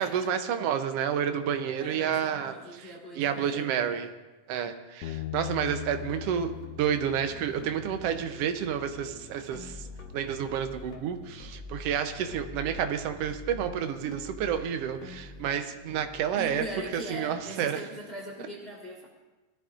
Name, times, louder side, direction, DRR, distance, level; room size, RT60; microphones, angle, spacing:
voice 1, 0.0-4.1 4.5-9.9 10.1-16.7 16.9-17.8, right 8 dB, 70° right, 7 dB, 1.6 m, -30 dB
voice 2, 1.8-3.6 16.4-19.1, equal, 25° left, -3 dB, 1.6 m, -41 dB
Bass guitar, 5.0-11.3, left 14 dB, 75° left, 1.5 m, -42 dB
sound 1, 5.6-17.5, left 2 dB, 55° left, 0.9 m, -46 dB
20.5 x 12.5 x 2.5 m, 1.2 s
omnidirectional pair, 3.4 m